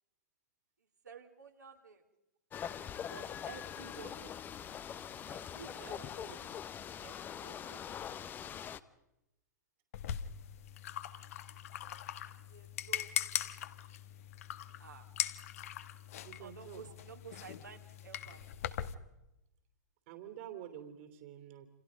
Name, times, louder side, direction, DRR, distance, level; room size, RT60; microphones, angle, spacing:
voice 1, 1.0-2.0 3.1-4.3 5.3-6.4 7.0-7.8 11.8-12.0 12.5-13.2 14.8-15.0 16.4-18.4, right 6 dB, 75° right, 1 dB, 3.4 m, -52 dB
sound 1, 2.5-8.8, left 9 dB, 20° left, 1.0 m, -43 dB
voice 2, 5.7-6.4 16.2-16.9 20.1-21.7, right 10 dB, 45° right, 8 dB, 3.1 m, -49 dB
sound 2, 9.9-18.9, left 11 dB, 55° left, 1.5 m, -41 dB
29.0 x 28.5 x 5.3 m, 0.92 s
figure-of-eight pair, 105°, 9 cm